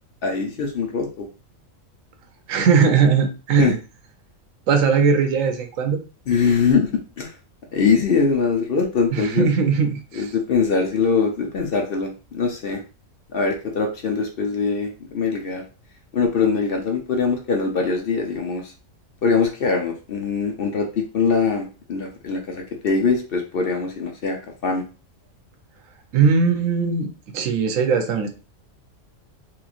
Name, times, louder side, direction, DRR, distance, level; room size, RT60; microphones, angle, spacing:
voice 1, 0.2-1.3 3.6-3.7 6.3-7.3 7.7-9.5 10.1-12.8 13.3-15.6 16.1-18.7 19.2-24.8, left 5 dB, 55° left, 2 dB, 0.7 m, -22 dB
voice 2, 2.5-3.8 4.7-6.0 9.1-10.3 26.1-28.3, right 5 dB, 85° right, 6 dB, 1.1 m, -19 dB
3.1 x 3.0 x 2.4 m, 0.33 s
omnidirectional pair, 1.4 m